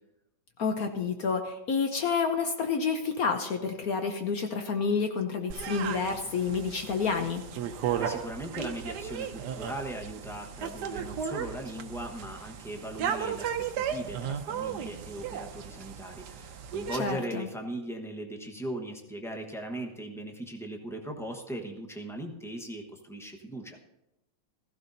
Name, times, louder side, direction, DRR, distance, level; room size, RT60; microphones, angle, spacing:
voice 1, 0.6-7.4 17.0-17.5, left 5 dB, 60° left, 5 dB, 1.0 m, -29 dB
sound 1, 5.5-17.0, right 8 dB, 65° right, 1.2 m, -35 dB
voice 2, 8.0-23.8, right 1 dB, ahead, 2 dB, 0.6 m, -39 dB
16.0 x 14.5 x 2.7 m, 0.90 s
omnidirectional pair, 2.2 m